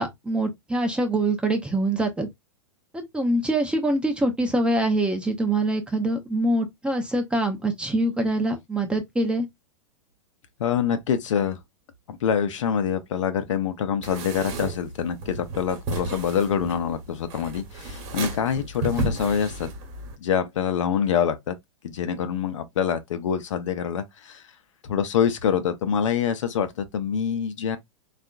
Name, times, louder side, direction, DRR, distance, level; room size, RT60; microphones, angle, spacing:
voice 1, 0.0-2.3 2.9-9.4, right 1 dB, 5° right, 0.5 m, -24 dB
voice 2, 10.6-11.6 12.1-19.7 20.2-21.6 21.8-24.4 24.9-27.8, left 8 dB, 65° left, 0.6 m, -25 dB
sound 1, 14.0-20.1, right 3 dB, 40° right, 1.1 m, -33 dB
3.5 x 2.5 x 2.3 m
hypercardioid pair, 105°, 17 cm